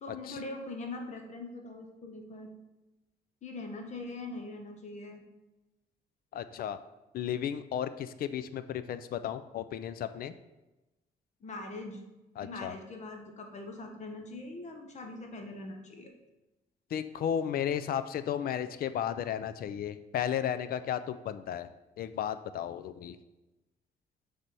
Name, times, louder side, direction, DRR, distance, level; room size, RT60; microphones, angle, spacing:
voice 1, 0.0-2.5 3.4-5.2 11.4-12.0 12.4-16.1, left 2 dB, 45° left, 4 dB, 0.9 m, -42 dB
voice 2, 6.3-6.8 7.1-10.3 12.4-12.7 16.9-21.7 22.0-23.2, left 9 dB, 65° left, 12 dB, 0.4 m, -34 dB
7.5 x 3.4 x 4.1 m, 1.0 s
cardioid pair, 125°, 17 cm